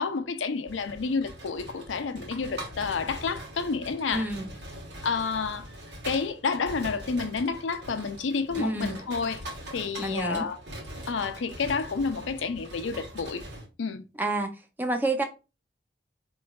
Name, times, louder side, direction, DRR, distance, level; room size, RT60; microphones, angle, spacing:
voice 1, 0.0-4.3 5.0-5.7 6.0-9.4 9.7-10.6 11.1-13.4 13.8-14.0, left 5 dB, 85° left, 0.5 m, -30 dB
sound 1, 0.7-13.7, right 1 dB, 70° right, 1.4 m, -42 dB
voice 2, 4.1-4.5 8.6-9.0 10.0-10.5 14.2-15.2, right 2 dB, 10° right, 0.5 m, -29 dB
4.4 x 3.0 x 2.3 m
head